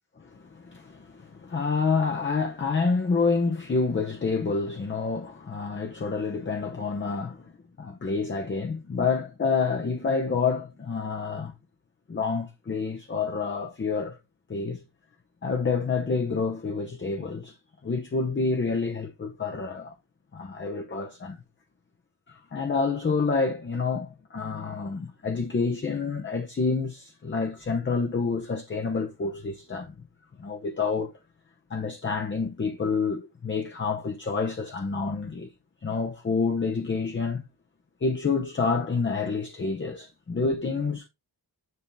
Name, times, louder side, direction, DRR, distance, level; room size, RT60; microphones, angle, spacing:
voice 1, 0.2-7.5 7.8-11.5 12.1-14.2 14.5-14.8 15.4-17.6 17.8-19.9 20.3-21.4 22.3-29.9 30.4-31.1 31.7-35.5 35.8-37.4 38.0-41.1, left 4 dB, 30° left, 0.8 m, -28 dB
9.3 x 3.6 x 3.4 m
wide cardioid pair, 115°, 41 cm